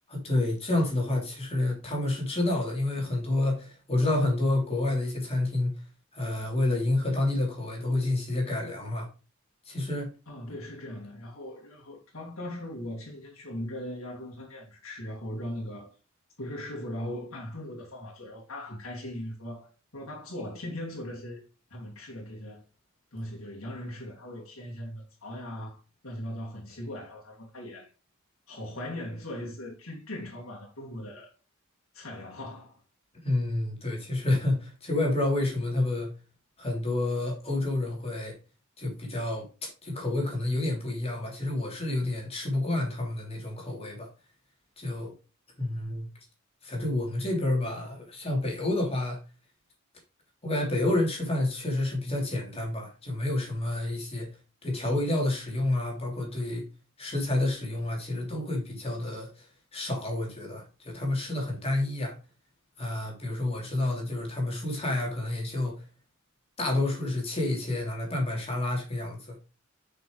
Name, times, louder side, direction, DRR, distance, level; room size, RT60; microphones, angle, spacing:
voice 1, 0.1-5.8 6.1-9.1 9.6-10.1 33.2-36.1 36.6-38.3 38.8-44.1 44.8-45.1 45.6-46.1 46.6-49.2 50.4-54.3 54.6-56.6 57.0-59.5 59.7-62.2 62.8-65.8 66.6-69.3, left 2 dB, 30° left, 3.2 m, -29 dB
voice 2, 10.3-15.9 16.4-21.4 21.7-22.6 23.1-27.9 28.5-31.3 31.9-32.8, left 1 dB, 80° left, 2.6 m, -39 dB
7.7 x 6.1 x 3.2 m
head